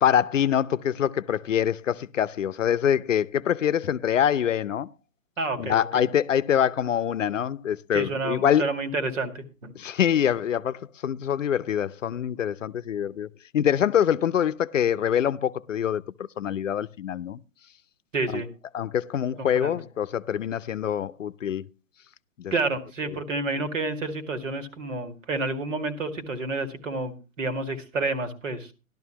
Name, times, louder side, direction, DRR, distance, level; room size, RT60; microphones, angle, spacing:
voice 1, 0.0-4.9 5.6-8.6 9.8-13.3 13.5-17.4 18.7-21.7 22.4-22.5, left 9 dB, 60° left, 0.7 m, -25 dB
voice 2, 5.4-6.0 7.9-9.7 18.1-18.5 19.4-19.8 22.5-28.7, right 3 dB, 60° right, 2.2 m, -29 dB
14.0 x 12.0 x 2.9 m
figure-of-eight pair, 135°, 42 cm